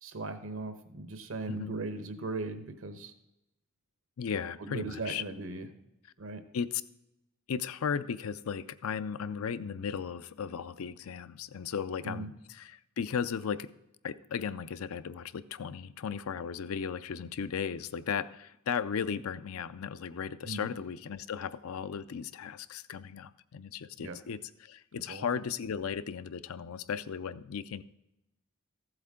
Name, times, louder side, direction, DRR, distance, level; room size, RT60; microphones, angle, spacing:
voice 1, 0.0-3.1 4.6-5.7 6.2-6.4 12.0-12.3 20.4-20.7 24.0-24.2 25.1-25.4, right 2 dB, 75° right, 9 dB, 1.0 m, -38 dB
voice 2, 4.2-5.2 6.5-6.8 7.5-13.7 14.0-27.8, left 7 dB, 85° left, 14 dB, 0.5 m, -36 dB
14.0 x 8.0 x 3.7 m, 0.90 s
head